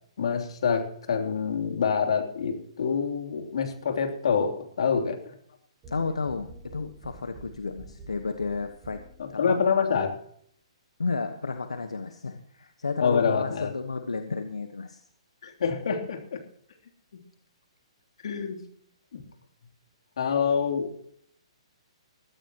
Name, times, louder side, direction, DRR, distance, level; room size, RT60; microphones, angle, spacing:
voice 1, 0.2-5.3 9.2-10.1 13.0-13.7 15.4-16.4 18.2-18.6 19.1-19.2 20.2-20.9, left 6 dB, 65° left, 3 dB, 3.3 m, -26 dB
sound 1, 5.8-9.4, right 2 dB, 25° right, 7.9 m, -48 dB
voice 2, 5.9-9.0 9.3-9.6 11.0-15.0, left 4 dB, 90° left, 7 dB, 1.3 m, -32 dB
21.5 x 14.0 x 3.0 m, 0.64 s
hypercardioid pair, 130°, 3 cm